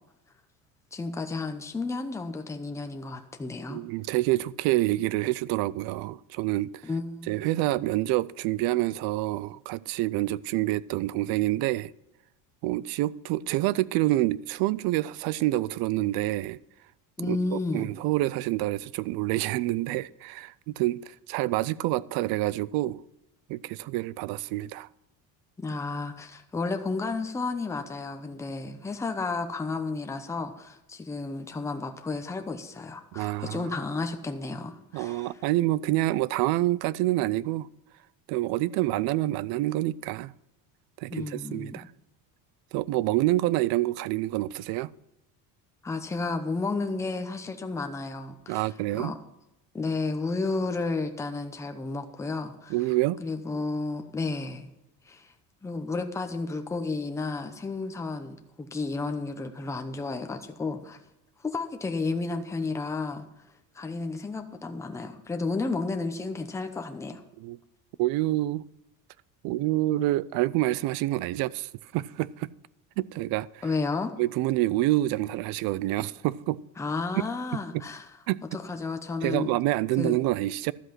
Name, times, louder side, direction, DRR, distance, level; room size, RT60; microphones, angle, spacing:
voice 1, 0.9-3.8 6.8-7.5 17.2-17.9 25.6-35.3 41.1-41.8 45.8-49.2 49.7-52.7 53.2-54.7 55.1-55.3 55.6-61.0 61.4-63.2 63.7-67.2 73.6-74.1 76.8-78.1 78.5-79.5 80.0-80.2, left 3 dB, 10° left, 0.7 m, -32 dB
voice 2, 3.7-6.7 7.3-11.9 12.6-16.6 17.2-23.0 23.5-24.9 33.1-33.7 34.9-37.7 38.3-40.3 41.0-41.8 42.7-44.9 48.5-49.1 52.7-53.2 67.4-67.6 68.0-68.6 69.4-72.5 73.0-73.6 74.2-76.6 77.1-77.2 77.7-77.8 78.3-78.4 79.2-80.7, right 17 dB, 75° right, 0.5 m, -27 dB
12.5 x 8.0 x 5.8 m
cardioid pair, 170°, 37 cm